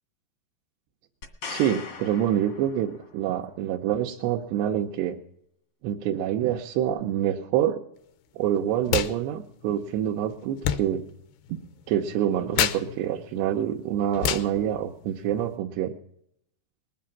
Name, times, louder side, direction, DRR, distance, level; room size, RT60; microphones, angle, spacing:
sound 1, 1.2-3.2 6.9-7.0, left 5 dB, 55° left, 1.2 m, -40 dB
voice 1, 1.5-5.2 5.8-7.8 8.4-11.0 11.5-11.6 11.9-15.9, right 10 dB, 80° right, -1 dB, 3.0 m, -26 dB
sound 2, 8.8-9.2 9.4-15.6, left 11 dB, 80° left, 2.5 m, -32 dB
20.0 x 8.5 x 7.3 m, 0.72 s
omnidirectional pair, 5.0 m